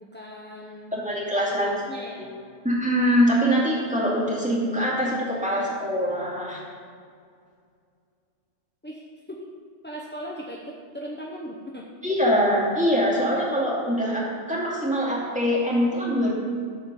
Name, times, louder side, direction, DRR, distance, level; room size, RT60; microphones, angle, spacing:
voice 1, 0.0-0.9 1.3-2.4 8.8-9.0 9.3-9.5 9.8-11.9, equal, 10° left, -3 dB, 0.6 m, -38 dB
voice 2, 0.9-1.7 2.6-6.6 12.0-16.3, equal, 5° right, -6 dB, 2.4 m, -23 dB
13.0 x 4.4 x 6.8 m, 2.2 s
omnidirectional pair, 1.4 m